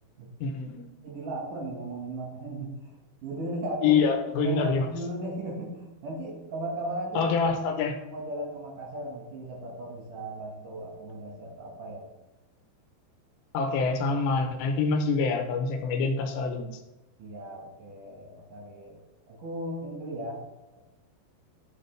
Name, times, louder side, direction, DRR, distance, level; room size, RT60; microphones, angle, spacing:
voice 1, 0.4-0.9 3.8-4.9 7.2-8.0 13.5-16.7, left 4 dB, 80° left, 5 dB, 3.0 m, -26 dB
voice 2, 1.0-2.8 3.2-4.0 4.4-7.3 8.1-12.1 17.2-19.0 19.3-20.5, right 1 dB, 60° right, -2 dB, 2.7 m, -36 dB
12.0 x 6.9 x 3.4 m, 1.0 s
omnidirectional pair, 5.1 m